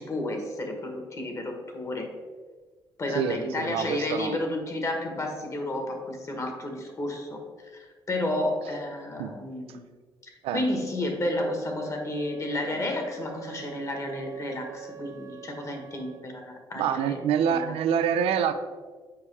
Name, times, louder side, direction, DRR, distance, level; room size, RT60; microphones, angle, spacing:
voice 1, 0.0-2.1 3.0-7.4 7.7-9.8 10.2-17.2 17.5-17.7, left 1 dB, 30° left, 3 dB, 1.2 m, -31 dB
voice 2, 3.1-4.4 9.2-9.3 10.4-10.6 16.8-18.5, right 8 dB, 90° right, 10 dB, 0.5 m, -26 dB
Wind instrument woodwind instrument, 11.8-16.3, right 9 dB, 35° right, 0.5 m, -45 dB
7.1 x 4.8 x 3.3 m, 1.5 s
cardioid pair, 105°, 10 cm